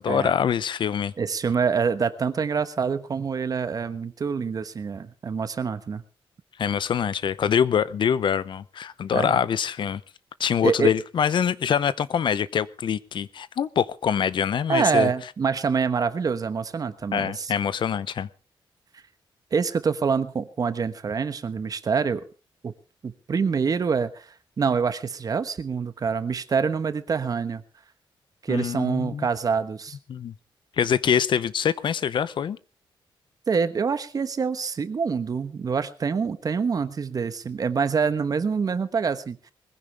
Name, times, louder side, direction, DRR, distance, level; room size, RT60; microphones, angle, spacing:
voice 1, 0.0-1.1 6.6-10.0 10.4-15.1 17.1-18.3 28.5-29.3 30.1-30.3 30.8-32.6, left 8 dB, 60° left, 0.7 m, -24 dB
voice 2, 1.2-6.0 9.1-9.4 10.6-10.9 14.7-17.5 19.5-22.2 22.6-22.7 23.0-24.3 24.6-27.6 28.4-30.0 33.5-39.5, right 5 dB, 40° right, 1.1 m, -26 dB
21.0 x 15.5 x 3.4 m
wide cardioid pair, 135°, 9 cm